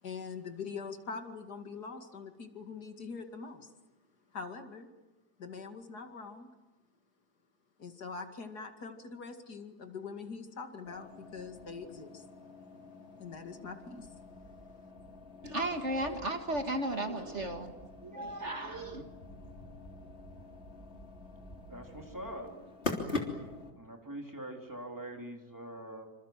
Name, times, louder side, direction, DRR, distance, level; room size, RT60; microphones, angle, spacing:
voice 1, 0.0-3.7 4.3-4.9 5.4-6.5 7.8-12.3 12.7-12.8 13.2-14.2 14.6-14.7, left 5 dB, 70° left, 6 dB, 2.7 m, -43 dB
sound 1, 10.9-23.7, left 3 dB, 40° left, 3.7 m, -44 dB
voice 2, 15.4-17.7 18.0-19.0, right 1 dB, 45° right, 5 dB, 2.1 m, -35 dB
voice 3, 21.7-22.5 23.8-26.1, right 1 dB, 10° right, 2 dB, 3.7 m, -43 dB
27.0 x 26.5 x 7.6 m, 1.1 s
omnidirectional pair, 1.8 m